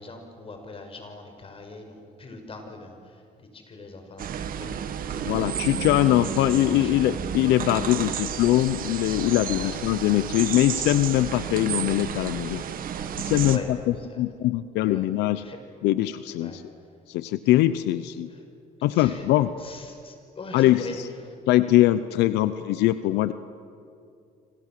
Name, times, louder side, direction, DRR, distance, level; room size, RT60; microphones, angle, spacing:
voice 1, 0.0-4.7 5.1-6.3 6.6-6.9 9.5-9.7 13.4-13.7 14.1-14.2 14.8-15.1 15.4-15.6 16.4-16.6 18.3-18.4 18.9-19.2 19.6-21.0 21.3-21.4, left 3 dB, 35° left, 5 dB, 5.8 m, -42 dB
sound 1, 4.2-13.6, right 8 dB, 55° right, 1.8 m, -31 dB
voice 2, 5.3-12.6 13.2-15.4 15.8-16.6 17.1-18.3 18.8-19.5 20.5-21.1 21.5-23.3, left 14 dB, 85° left, 13 dB, 0.8 m, -22 dB
29.0 x 26.5 x 7.6 m, 2.5 s
cardioid pair, 110°, 17 cm